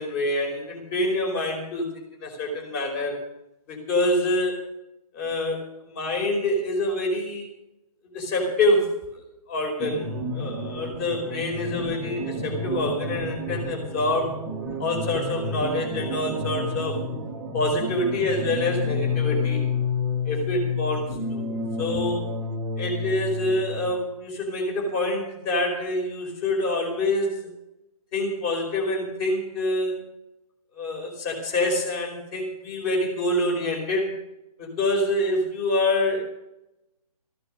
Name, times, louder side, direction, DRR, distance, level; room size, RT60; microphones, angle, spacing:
voice 1, 0.0-3.2 3.7-4.7 5.1-7.5 8.1-14.4 14.8-17.0 17.5-19.6 20.3-21.5 21.8-22.2 22.8-27.5 28.1-30.0 30.8-34.1 34.6-36.2, left 1 dB, 25° left, 2 dB, 5.0 m, -26 dB
sound 1, 9.8-23.9, left 3 dB, 5° right, 1.3 m, -30 dB
15.0 x 11.5 x 6.6 m, 0.87 s
figure-of-eight pair, 150°, 20 cm